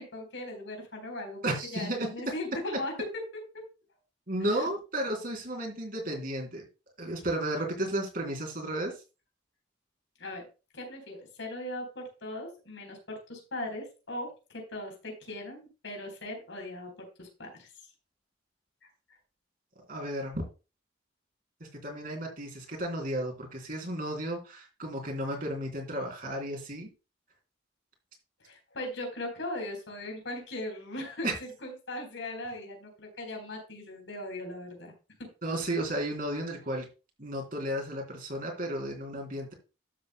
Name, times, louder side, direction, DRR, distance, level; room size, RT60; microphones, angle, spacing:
voice 1, 0.0-1.4 1.7-2.9 4.5-4.7 10.2-10.4 10.7-17.7 28.4-34.9 35.2-35.3, left 1 dB, 85° left, 2 dB, 4.2 m, -39 dB
voice 2, 1.4-2.1 2.7-2.8 4.3-6.6 7.0-9.0 19.9-20.4 21.6-26.9 31.2-31.3 35.4-36.9 37.2-39.5, right 1 dB, 50° right, 2 dB, 3.1 m, -33 dB
13.0 x 7.6 x 2.2 m, 0.31 s
head